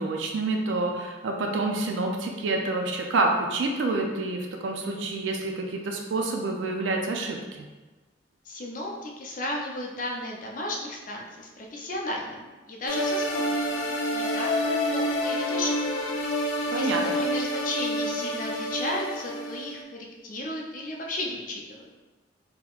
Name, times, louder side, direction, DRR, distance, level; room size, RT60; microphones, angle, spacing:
voice 1, 0.0-7.7 16.7-17.2, right 2 dB, 75° right, 2 dB, 0.4 m, -28 dB
voice 2, 8.4-16.0 16.6-21.9, left 1 dB, 45° left, -1 dB, 0.5 m, -34 dB
sound 1, 12.9-19.8, equal, 90° left, 0.6 m, -28 dB
3.6 x 2.8 x 2.3 m, 1.2 s
head